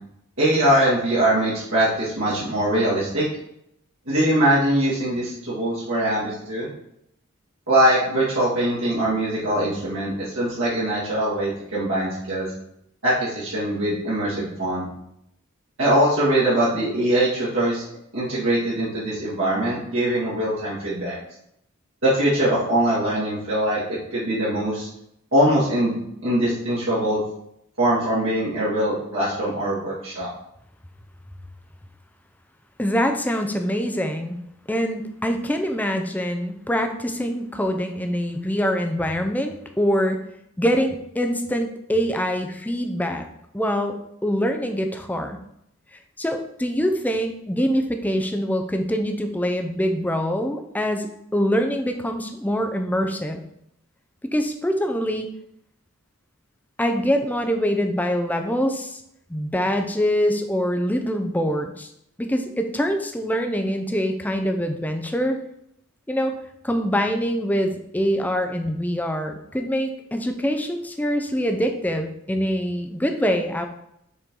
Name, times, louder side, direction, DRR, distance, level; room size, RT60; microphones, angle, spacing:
voice 1, 0.4-3.2 4.1-6.7 7.7-12.5 13.0-14.9 15.8-17.8 18.1-21.2 22.0-23.8 24.1-24.9 25.3-27.2 27.8-30.3, right 1 dB, 70° right, -9 dB, 2.0 m, -22 dB
voice 2, 32.8-34.4 34.7-40.2 40.6-43.2 43.5-45.4 46.2-53.4 54.3-55.3 56.8-59.0 59.3-61.9 62.2-65.4 66.1-66.3 66.6-73.7, equal, 10° left, 5 dB, 0.5 m, -24 dB
6.7 x 4.5 x 3.7 m, 0.77 s
head